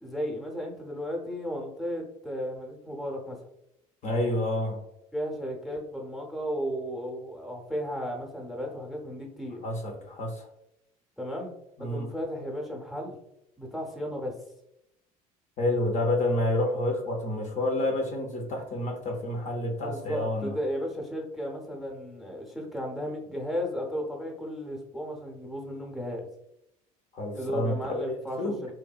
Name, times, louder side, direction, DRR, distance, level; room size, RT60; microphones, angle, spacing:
voice 1, 0.0-3.4 5.1-9.6 11.2-11.5 11.8-13.2 13.6-14.3 19.8-26.3 27.3-28.7, equal, ahead, 0 dB, 0.6 m, -34 dB
voice 2, 4.0-4.8 9.6-10.5 11.8-12.1 15.6-20.6 27.1-28.7, left 1 dB, 40° left, 1 dB, 0.5 m, -29 dB
2.7 x 2.1 x 2.3 m, 0.83 s
hypercardioid pair, 65°, 19 cm